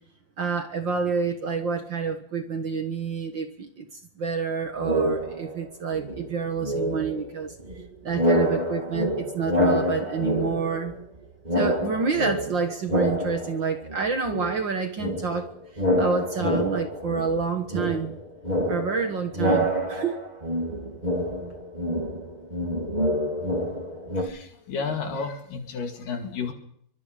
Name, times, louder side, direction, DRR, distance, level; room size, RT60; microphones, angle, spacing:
voice 1, 0.4-7.5 8.0-10.9 11.5-15.5 16.0-18.2 18.7-20.2, right 5 dB, 60° right, 6 dB, 1.2 m, -28 dB
sound 1, 4.8-5.7 5.9-11.2 11.4-14.0 14.3-24.2, equal, 15° right, 2.3 m, -27 dB
voice 2, 24.1-26.5, left 5 dB, 70° left, 4 dB, 3.7 m, -32 dB
24.5 x 23.5 x 5.1 m, 0.69 s
omnidirectional pair, 4.1 m